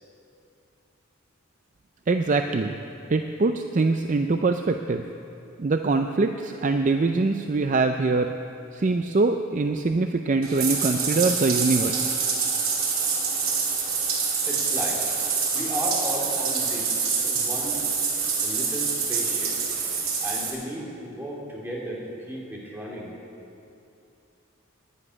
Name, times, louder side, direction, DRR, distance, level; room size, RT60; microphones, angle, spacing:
voice 1, 2.1-2.8 3.1-5.0 5.6-8.3 8.7-12.2, right 3 dB, 40° right, 6 dB, 0.4 m, -23 dB
Bathtub (filling or washing), 10.4-20.5, right 5 dB, 80° right, 2.8 m, -26 dB
voice 2, 14.4-15.1 15.5-17.8 18.4-19.5 20.2-23.1, equal, 10° right, -4 dB, 2.8 m, -34 dB
11.0 x 9.8 x 9.8 m, 2.7 s
head